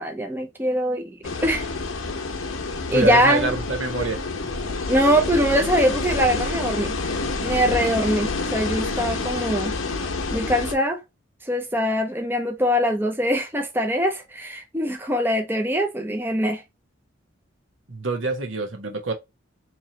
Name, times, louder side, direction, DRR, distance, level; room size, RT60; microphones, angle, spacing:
voice 1, 0.0-1.6 2.9-3.5 4.9-6.9 7.4-9.7 10.3-11.0 11.5-16.6, equal, 10° right, 0.6 m, -22 dB
sound 1, 1.2-10.7, left 3 dB, 85° left, 0.9 m, -28 dB
voice 2, 2.9-4.2 17.9-19.1, right 3 dB, 70° right, 1.2 m, -26 dB
4.5 x 3.0 x 2.8 m
head